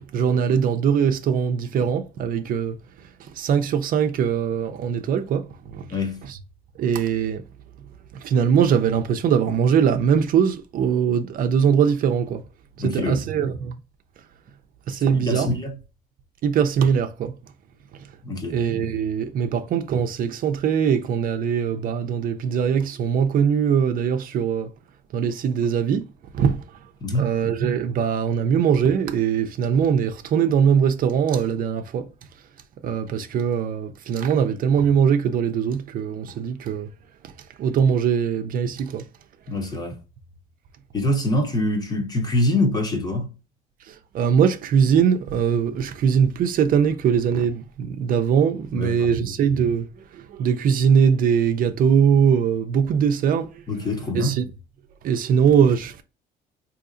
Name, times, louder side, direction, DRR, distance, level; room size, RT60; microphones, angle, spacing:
voice 1, 0.1-2.8 3.0-6.0 6.3-6.4 6.8-7.4 8.1-12.4 12.8-13.8 14.9-15.5 16.4-17.3 18.5-24.7 25.1-26.1 26.3-26.6 27.1-32.1 32.8-36.9 37.6-39.1 43.8-53.6 54.1-54.5 55.0-56.0, right 7 dB, 55° right, 0.5 m, -21 dB
voice 2, 5.9-6.2 12.8-13.2 15.0-15.7 18.2-18.6 27.0-27.3 39.5-40.0 40.9-43.3 48.7-49.1 53.7-54.4, left 1 dB, 25° left, 1.0 m, -24 dB
3.8 x 2.8 x 2.5 m
cardioid pair, 110°, 17 cm